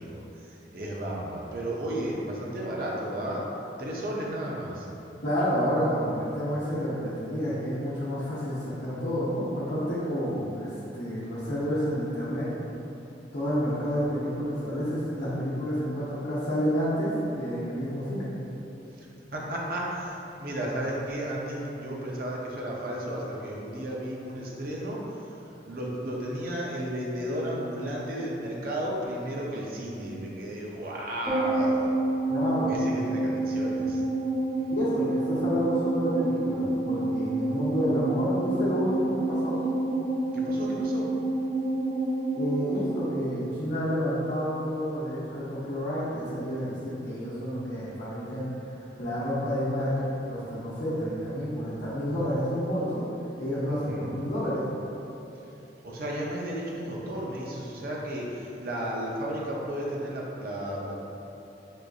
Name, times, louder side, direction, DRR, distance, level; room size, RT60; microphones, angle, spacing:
voice 1, 0.0-3.4 3.8-4.9 19.0-19.1 19.3-25.3 25.6-32.0 32.7-34.0 34.6-34.7 40.3-41.1 53.7-54.1 55.8-61.0, right 1 dB, 55° right, -3 dB, 0.5 m, -33 dB
voice 2, 5.2-12.5 13.3-18.3 32.3-32.8 34.7-39.7 42.3-53.0 53.4-54.6, equal, 70° left, -11 dB, 0.8 m, -29 dB
sound 1, 31.3-43.8 44.0-44.1, right 2 dB, 15° right, 1.0 m, -28 dB
6.2 x 2.5 x 2.3 m, 2.9 s
head